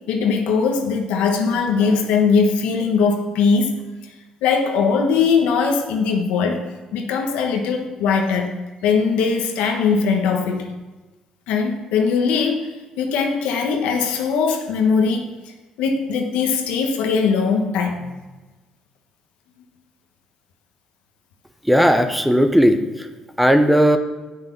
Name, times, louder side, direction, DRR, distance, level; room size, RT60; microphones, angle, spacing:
voice 1, 0.1-3.8 4.4-6.6 6.9-8.5 8.8-10.7 11.5-12.7 13.0-15.3 15.8-18.1, left 5 dB, 85° left, 4 dB, 1.2 m, -20 dB
voice 2, 21.6-23.1 23.4-24.0, equal, 5° right, 8 dB, 0.8 m, -16 dB
8.7 x 6.1 x 5.8 m, 1.2 s
cardioid pair, 85°, 2 cm